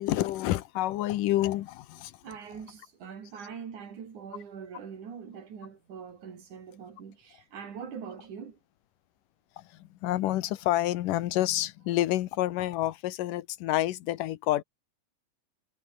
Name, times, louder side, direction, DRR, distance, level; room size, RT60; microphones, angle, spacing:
voice 1, 0.0-2.2 9.6-14.6, left 15 dB, 85° left, 2.6 m, -28 dB
voice 2, 2.2-8.6, right 7 dB, 70° right, 4.6 m, -43 dB
omnidirectional pair, 3.7 m